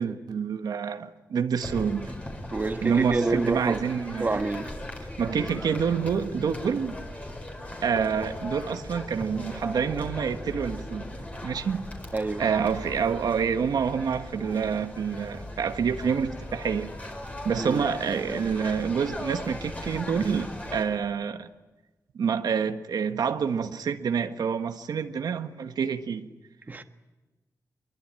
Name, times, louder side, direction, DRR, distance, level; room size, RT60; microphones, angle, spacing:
voice 1, 0.0-2.1 2.8-4.4 5.2-7.0 7.8-11.0 11.4-11.9 12.4-16.9 17.4-21.5 22.1-26.3, right 6 dB, 85° right, 1.4 m, -27 dB
sound 1, 1.6-20.8, left 1 dB, 20° left, 4.8 m, -38 dB
voice 2, 2.5-3.8 4.2-4.7 12.1-12.4 17.6-17.8 26.7-26.8, right 3 dB, 25° right, 1.4 m, -28 dB
24.5 x 22.5 x 9.0 m
wide cardioid pair, 150°, 7 cm